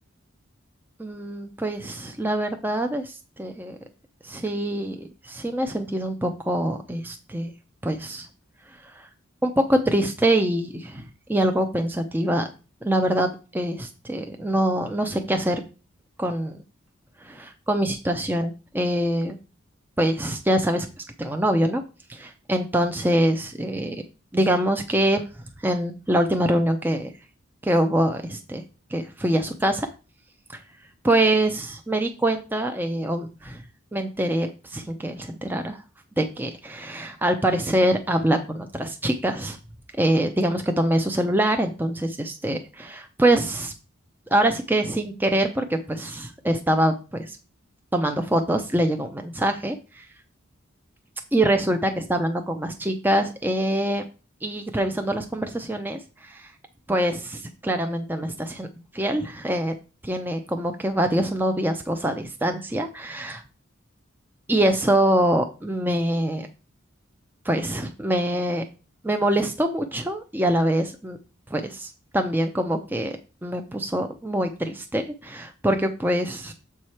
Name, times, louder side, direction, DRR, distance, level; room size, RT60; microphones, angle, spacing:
voice 1, 1.0-3.8 4.2-7.5 7.8-8.3 9.0-9.1 9.4-12.5 12.8-15.6 16.2-16.6 17.2-19.4 20.0-20.9 21.2-21.8 22.1-24.0 24.3-25.2 25.6-27.1 27.6-28.6 28.9-29.9 30.5-30.6 31.0-33.6 33.9-35.8 36.2-39.6 40.0-43.7 44.3-47.4 47.9-50.0 51.3-54.0 54.4-56.5 56.9-58.7 58.9-59.7 60.0-63.4 64.5-66.5 67.4-68.6 69.0-71.2 71.5-76.5, right 1 dB, 10° right, 5 dB, 0.5 m, -24 dB
7.3 x 4.8 x 4.3 m, 0.33 s
head